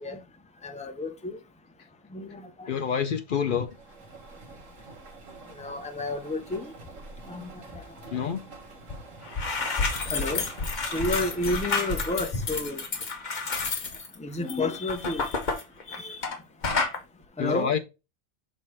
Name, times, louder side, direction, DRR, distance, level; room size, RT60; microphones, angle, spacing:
voice 1, 0.6-1.4 2.1-2.7 5.6-6.7 7.3-7.5 10.1-10.4 10.9-12.8 14.2-15.3 15.9-16.2 17.4-17.7, left 2 dB, 10° left, 0.3 m, -31 dB
voice 2, 2.7-3.8 8.1-8.5 17.4-17.8, left 7 dB, 65° left, 0.5 m, -27 dB
sound 1, 3.6-12.9, right 3 dB, 65° right, 1.7 m, -47 dB
sound 2, 8.9-9.0 9.2-16.4 16.6-17.0, left 4 dB, 35° left, 1.0 m, -30 dB
6.2 x 3.8 x 4.3 m
omnidirectional pair, 1.5 m